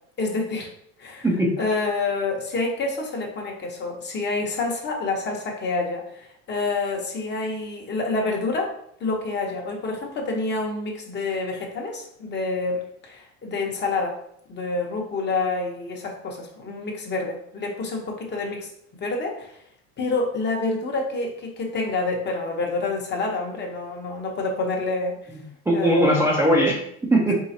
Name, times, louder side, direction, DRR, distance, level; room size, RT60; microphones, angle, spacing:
voice 1, 0.2-0.7 1.0-1.3 1.6-8.7 9.0-14.2 14.5-18.7 19.0-19.6 20.0-25.2 25.7-26.2, left 3 dB, 30° left, 0 dB, 1.1 m, -27 dB
voice 2, 1.2-1.6 25.7-27.3, equal, 5° right, -3 dB, 0.6 m, -20 dB
4.8 x 3.8 x 2.8 m, 0.70 s
supercardioid pair, 125°, 34 cm